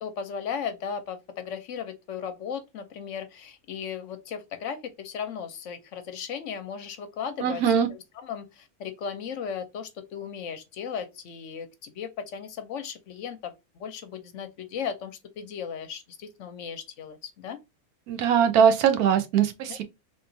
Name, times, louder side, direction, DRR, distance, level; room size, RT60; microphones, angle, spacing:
voice 1, 0.0-7.6 8.2-17.6 19.7-19.8, left 7 dB, 65° left, 0.9 m, -36 dB
voice 2, 7.4-7.9 18.1-19.8, right 8 dB, 85° right, 1.2 m, -21 dB
3.3 x 2.8 x 2.6 m
omnidirectional pair, 1.5 m